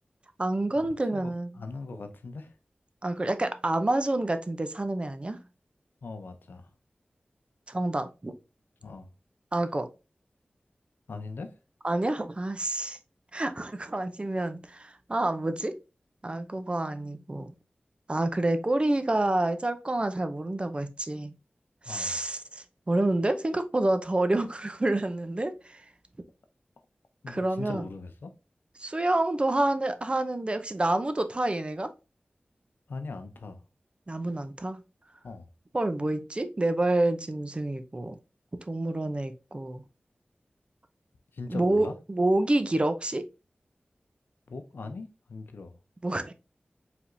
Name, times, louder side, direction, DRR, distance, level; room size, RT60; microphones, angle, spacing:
voice 1, 0.4-1.6 3.0-5.4 7.7-8.3 9.5-9.9 11.8-13.0 13.3-15.7 16.2-17.5 18.1-21.3 21.8-25.8 27.3-27.8 28.8-31.9 34.1-34.8 35.7-38.2 38.7-39.8 41.5-43.2 46.0-46.3, right 2 dB, 30° right, 0.6 m, -28 dB
voice 2, 1.1-2.6 6.0-6.7 8.8-9.1 11.1-11.5 21.9-22.2 27.2-28.3 32.9-33.6 35.2-35.5 41.3-42.0 44.5-45.8, left 3 dB, 90° left, 0.6 m, -40 dB
4.8 x 3.5 x 2.6 m
wide cardioid pair, 60°, 3 cm